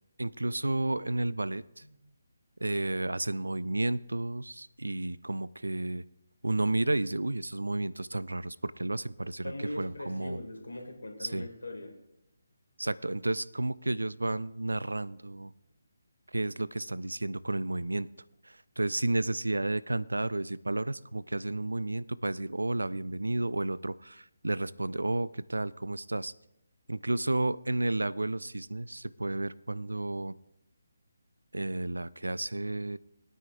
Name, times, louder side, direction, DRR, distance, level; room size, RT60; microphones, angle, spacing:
voice 1, 0.2-1.8 2.6-6.0 6.4-10.4 11.2-11.5 12.8-15.5 16.3-18.1 18.4-26.3 26.9-30.3 31.5-33.0, right 2 dB, 80° right, 19 dB, 0.3 m, -32 dB
voice 2, 9.4-11.9, left 1 dB, 75° left, 3 dB, 2.3 m, -40 dB
20.5 x 9.2 x 2.6 m, 0.86 s
figure-of-eight pair, 145°, 0 cm